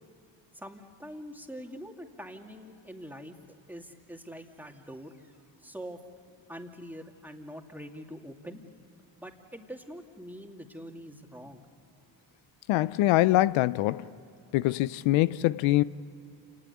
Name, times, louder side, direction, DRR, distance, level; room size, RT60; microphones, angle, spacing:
voice 1, 0.5-5.3 5.6-6.0 6.5-8.6 9.2-11.6, equal, 5° right, 2.7 m, -44 dB
voice 2, 12.7-14.1 14.5-15.8, left 17 dB, 90° left, 0.5 m, -24 dB
28.0 x 19.5 x 8.4 m
supercardioid pair, 60°, 46 cm